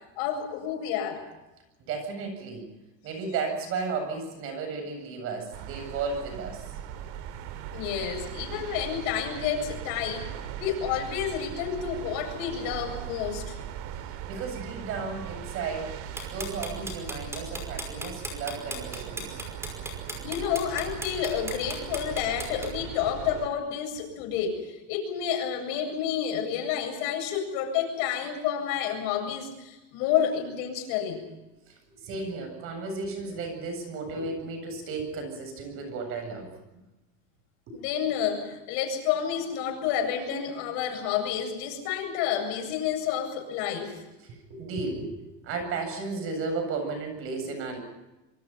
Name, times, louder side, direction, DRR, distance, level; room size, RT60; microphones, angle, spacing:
voice 1, 0.2-1.2 7.7-13.5 20.2-31.2 37.7-44.0, left 8 dB, 75° left, 4 dB, 8.0 m, -30 dB
voice 2, 1.9-2.7 3.0-7.2 13.9-19.4 31.7-36.6 44.2-47.8, right 4 dB, 45° right, 7 dB, 8.0 m, -34 dB
sound 1, 5.5-23.5, right 10 dB, 70° right, 2.5 m, -39 dB
sound 2, 16.2-22.7, equal, 10° right, 5.4 m, -36 dB
26.5 x 24.5 x 5.8 m, 1.0 s
cardioid pair, 175°, 31 cm